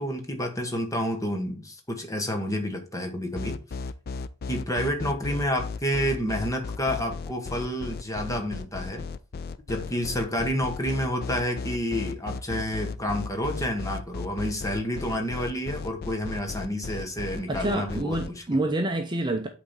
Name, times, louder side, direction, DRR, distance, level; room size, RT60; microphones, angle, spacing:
voice 1, 0.0-3.6 4.5-9.0 9.7-18.2, equal, 15° left, 1.1 m, -29 dB
sound 1, 3.3-18.3, left 4 dB, 45° left, 0.4 m, -35 dB
voice 2, 17.5-19.5, right 1 dB, 20° right, 0.6 m, -27 dB
8.4 x 3.6 x 4.3 m
head